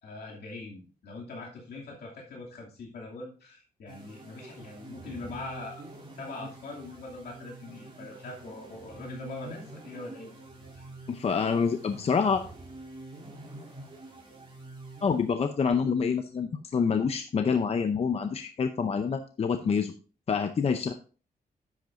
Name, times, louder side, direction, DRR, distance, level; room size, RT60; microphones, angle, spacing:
voice 1, 0.0-5.8 6.2-10.4 10.7-10.9, left 3 dB, 80° left, -2 dB, 2.6 m, -42 dB
sound 1, 3.9-15.6, right 2 dB, 30° right, 3.0 m, -46 dB
voice 2, 11.1-12.4 15.0-19.9 20.3-20.9, left 6 dB, 40° left, 8 dB, 0.6 m, -27 dB
10.5 x 7.9 x 2.6 m, 0.37 s
wide cardioid pair, 155°, 16 cm